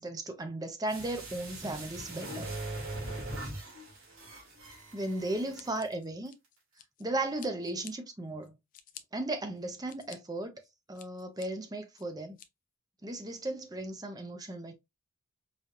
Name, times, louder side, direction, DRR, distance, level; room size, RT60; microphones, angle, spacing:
voice 1, 0.0-2.6 4.9-6.4 7.0-8.6 9.1-10.6 10.9-12.4 13.0-14.7, right 2 dB, 15° right, 0.5 m, -36 dB
sound 1, 0.9-5.9 6.2-6.3, right 2 dB, 75° right, 2.4 m, -41 dB
Scissors, 5.5-7.0 7.4-7.9 8.4-9.0 9.6-10.2 10.6-11.5 12.0-12.5, left 9 dB, 40° left, 0.4 m, -51 dB
4.9 x 2.7 x 2.4 m
head